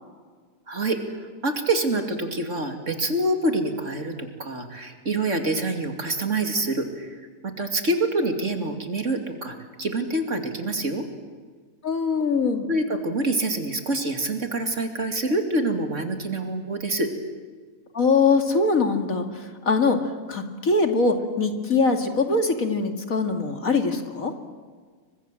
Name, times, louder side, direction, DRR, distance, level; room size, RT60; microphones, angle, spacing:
voice 1, 0.7-11.0 12.7-17.1, right 2 dB, 50° right, 5 dB, 3.0 m, -26 dB
voice 2, 11.8-12.7 17.9-20.0 20.3-24.3, left 4 dB, 60° left, 6 dB, 2.8 m, -22 dB
30.0 x 24.5 x 7.7 m, 1.5 s
omnidirectional pair, 1.6 m